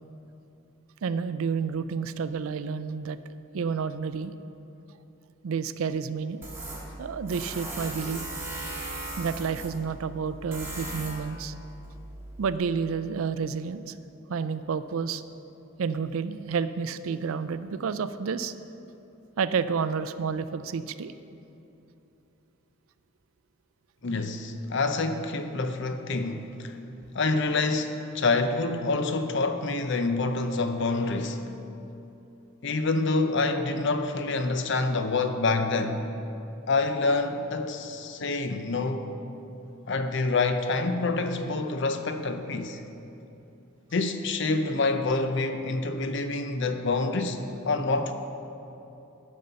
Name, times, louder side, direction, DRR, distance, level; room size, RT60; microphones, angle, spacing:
voice 1, 1.0-3.2 3.5-4.3 5.4-6.4 7.0-8.3 9.2-11.5 12.4-13.9 14.3-15.2 15.8-18.5 19.4-21.1, right 6 dB, 70° right, 13 dB, 0.4 m, -30 dB
Tools, 6.4-12.6, right 2 dB, 10° right, 1.6 m, -38 dB
voice 2, 24.0-26.8 27.1-31.6 32.6-36.1 36.7-39.1 39.9-42.8 43.9-47.4 47.6-48.1, left 3 dB, 55° left, 8 dB, 0.6 m, -27 dB
11.5 x 5.4 x 6.8 m, 2.9 s
head